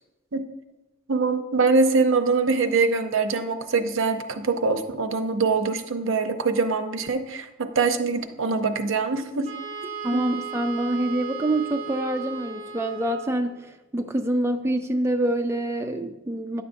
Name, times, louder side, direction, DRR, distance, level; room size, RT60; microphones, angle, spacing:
voice 1, 1.1-9.5 10.1-10.2, right 4 dB, 70° right, 8 dB, 0.6 m, -23 dB
Wind instrument woodwind instrument, 9.4-13.5, right 6 dB, 35° right, 2.2 m, -36 dB
voice 2, 10.0-16.6, right 1 dB, 15° right, 5 dB, 0.3 m, -26 dB
9.9 x 6.9 x 2.6 m, 1.1 s
head